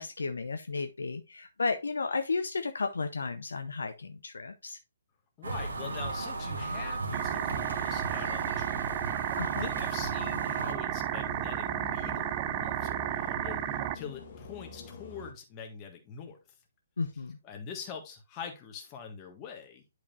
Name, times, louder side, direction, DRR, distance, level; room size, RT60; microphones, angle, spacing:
voice 1, 0.0-4.8 9.4-9.7 17.0-17.4, left 4 dB, 65° left, 7 dB, 0.7 m, -33 dB
voice 2, 5.4-9.0 9.5-16.4 17.4-19.8, left 6 dB, 20° left, 3 dB, 1.6 m, -44 dB
sound 1, 5.4-10.7, right 3 dB, 60° right, 2.2 m, -36 dB
sound 2, 7.1-13.9, right 14 dB, 25° right, 0.3 m, -33 dB
sound 3, 7.2-15.3, left 4 dB, 40° left, 1.6 m, -46 dB
10.5 x 5.0 x 2.5 m, 0.26 s
figure-of-eight pair, 135°, 0 cm